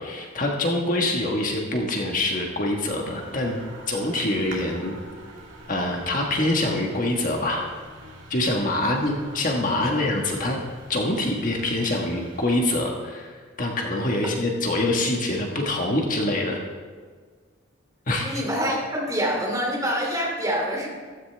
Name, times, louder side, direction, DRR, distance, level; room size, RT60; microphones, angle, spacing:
voice 1, 0.0-3.6 3.9-5.0 5.7-7.7 8.3-10.6 10.9-16.6 18.1-18.4, left 1 dB, 40° left, 0 dB, 1.5 m, -25 dB
sound 1, 3.1-12.6, right 1 dB, 65° right, 2.9 m, -45 dB
voice 2, 18.2-20.9, equal, 15° right, -2 dB, 3.0 m, -26 dB
15.0 x 14.0 x 3.4 m, 1.6 s
head